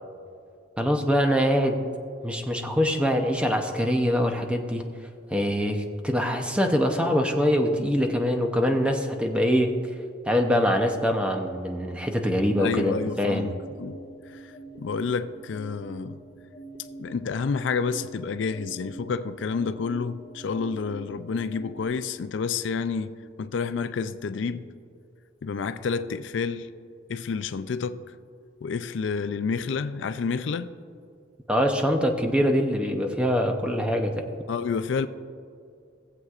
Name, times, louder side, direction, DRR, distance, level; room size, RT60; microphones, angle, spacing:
voice 1, 0.8-1.8 2.2-4.8 5.3-9.7 10.2-13.5 31.5-34.2, equal, 5° right, 0.7 m, -24 dB
sound 1, 12.5-21.9, right 2 dB, 30° left, 2.4 m, -45 dB
voice 2, 12.6-14.0 14.3-14.5 14.8-16.2 17.0-24.7 25.4-26.7 27.1-28.0 28.6-30.7 34.5-35.1, left 5 dB, 70° left, 0.4 m, -29 dB
18.5 x 7.8 x 2.4 m
head